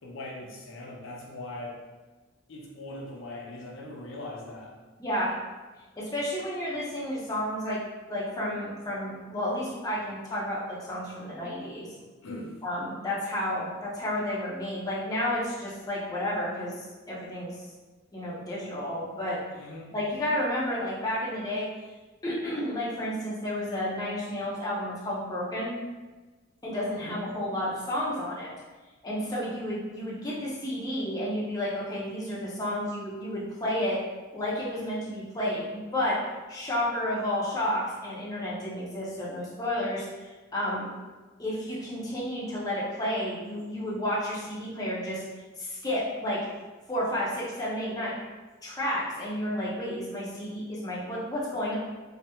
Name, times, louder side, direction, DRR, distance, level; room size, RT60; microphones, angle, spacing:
voice 1, 0.0-1.7 2.5-4.7 12.0-12.6 19.5-19.9 27.0-27.2, left 1 dB, 65° left, -2 dB, 0.5 m, -40 dB
voice 2, 5.0-5.4 6.0-7.8 8.1-11.9 12.6-17.7 18.1-19.4 19.9-21.7 22.2-25.8 26.6-28.5 29.0-34.0 34.3-36.2 36.5-40.9 41.4-45.2 45.6-46.4 46.9-48.1 48.6-51.8, left 1 dB, 20° left, -7 dB, 0.5 m, -31 dB
3.3 x 2.1 x 2.8 m, 1.3 s
head